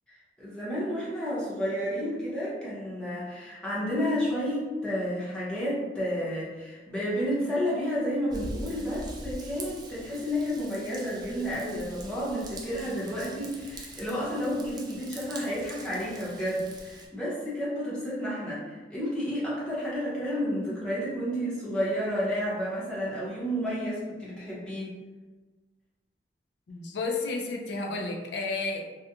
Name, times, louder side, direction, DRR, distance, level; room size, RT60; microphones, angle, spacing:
voice 1, 0.4-25.0, equal, 5° left, -9 dB, 0.8 m, -31 dB
Raindrop / Vehicle horn car horn honking / Trickle dribble, 8.3-17.1, right 2 dB, 25° right, 0.3 m, -43 dB
voice 2, 26.7-28.9, left 3 dB, 70° left, 1 dB, 0.4 m, -32 dB
2.4 x 2.2 x 2.8 m, 1.3 s
head